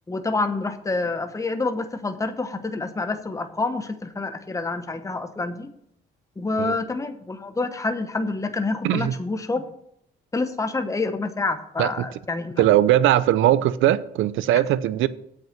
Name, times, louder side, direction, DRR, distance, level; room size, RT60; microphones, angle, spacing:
voice 1, 0.1-5.7 6.4-9.7 10.3-12.6, left 3 dB, 15° left, 0.9 m, -27 dB
voice 2, 8.8-9.1 11.8-12.1 12.6-15.1, right 12 dB, 85° right, 0.5 m, -20 dB
8.0 x 6.1 x 7.2 m
cardioid pair, 90°, 20 cm